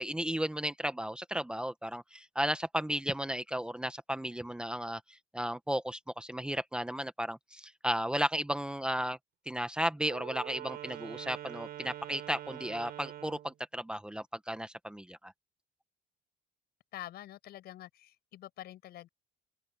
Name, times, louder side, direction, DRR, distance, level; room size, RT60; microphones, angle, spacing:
voice 1, 0.0-9.2 9.5-15.3, equal, 5° right, 1.1 m, -34 dB
Wind instrument woodwind instrument, 10.0-13.5, right 12 dB, 65° right, 7.9 m, -44 dB
voice 2, 16.9-19.1, left 13 dB, 70° left, 7.0 m, -46 dB
open air
cardioid pair, 110°, 17 cm